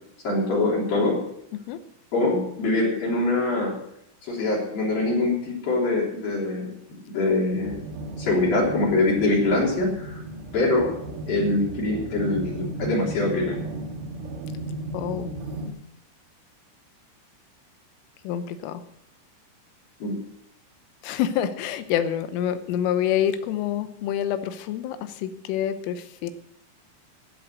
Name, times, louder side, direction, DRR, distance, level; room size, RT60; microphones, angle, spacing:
voice 1, 0.2-1.2 2.1-3.8 4.2-6.7 7.1-7.8 8.2-10.1 10.5-10.9 11.3-13.6 20.0-20.2, left 2 dB, 50° left, -4 dB, 4.6 m, -23 dB
sound 1, 7.5-15.7, right 2 dB, 80° right, 3.8 m, -35 dB
voice 2, 14.9-15.3 18.2-18.8 21.0-26.3, left 10 dB, 80° left, 10 dB, 3.4 m, -27 dB
16.0 x 7.8 x 6.4 m, 0.77 s
omnidirectional pair, 5.8 m